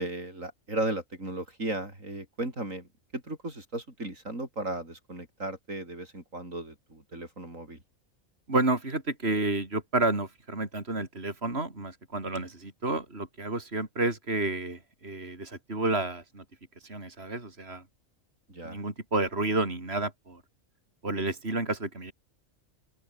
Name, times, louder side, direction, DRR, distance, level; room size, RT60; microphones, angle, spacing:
voice 1, 0.0-7.8 18.5-18.8, right 2 dB, 85° right, 7.1 m, -36 dB
voice 2, 8.5-16.4 16.8-17.8 18.6-20.4 21.0-22.1, right 2 dB, 50° right, 4.5 m, -30 dB
open air
omnidirectional pair, 1.3 m